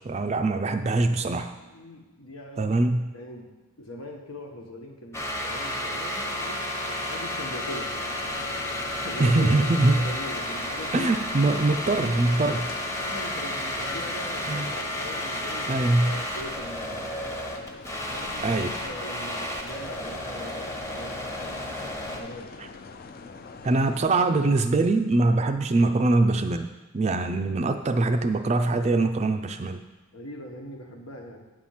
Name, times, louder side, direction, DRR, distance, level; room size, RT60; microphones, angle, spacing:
voice 1, 0.0-1.5 2.6-3.0 9.2-10.0 10.9-12.6 14.5-14.7 15.7-16.2 18.4-18.7 23.6-26.7 26.9-29.8, right 2 dB, 30° right, 7 dB, 0.4 m, -23 dB
voice 2, 1.5-2.8 3.1-7.9 8.9-11.1 11.8-12.6 13.0-17.1 18.0-22.6 27.5-27.9 30.1-31.5, equal, 85° left, 1 dB, 1.5 m, -41 dB
sound 1, 5.1-22.2, left 1 dB, 15° left, 0.8 m, -32 dB
sound 2, 7.6-24.2, left 4 dB, 45° left, 0.5 m, -44 dB
9.1 x 4.3 x 7.3 m, 1.1 s
head